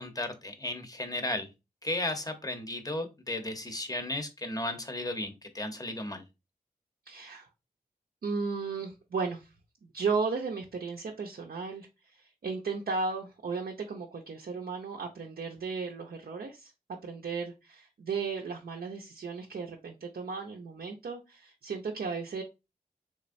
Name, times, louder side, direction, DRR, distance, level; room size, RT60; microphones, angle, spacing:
voice 1, 0.0-1.5 1.8-6.2, left 1 dB, 25° left, 7 dB, 0.8 m, -34 dB
voice 2, 7.1-7.5 8.2-9.5 9.8-16.7 17.0-22.4, right 4 dB, 75° right, 1 dB, 0.6 m, -35 dB
3.6 x 3.1 x 2.5 m, 0.25 s
wide cardioid pair, 60°, 15 cm